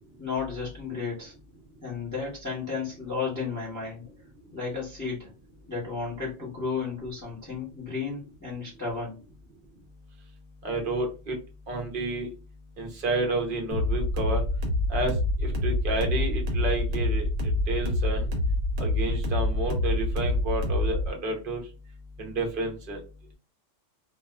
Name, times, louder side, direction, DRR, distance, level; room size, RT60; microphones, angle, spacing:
voice 1, 0.2-1.3 1.8-4.0 4.5-5.3 5.7-9.2, left 5 dB, 15° left, -6 dB, 0.7 m, -33 dB
voice 2, 10.6-11.4 11.7-12.3 12.8-14.4 14.9-18.3 18.8-21.6 22.2-23.0, right 2 dB, 50° right, 2 dB, 0.8 m, -30 dB
sound 1, 13.7-21.1, left 1 dB, 85° right, 1.1 m, -26 dB
2.4 x 2.4 x 2.3 m, 0.32 s
omnidirectional pair, 1.3 m